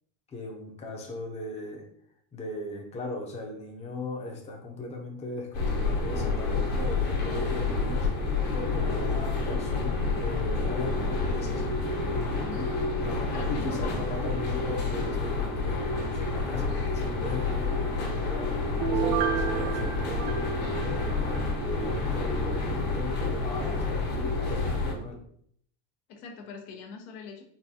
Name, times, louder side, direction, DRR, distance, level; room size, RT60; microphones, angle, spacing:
voice 1, 0.3-1.8 2.3-11.8 13.0-18.5 18.8-21.1 21.6-25.2, left 3 dB, 15° left, 1 dB, 0.5 m, -38 dB
sound 1, 5.5-24.9, left 3 dB, 55° left, 1.2 m, -29 dB
voice 2, 12.5-12.8 13.3-14.0 26.1-27.4, left 5 dB, 85° left, 3 dB, 0.9 m, -42 dB
Piano, 18.8-21.5 21.9-22.0, right 8 dB, 80° right, 0.8 m, -31 dB
3.8 x 2.3 x 2.7 m, 0.64 s
cardioid pair, 130°, 44 cm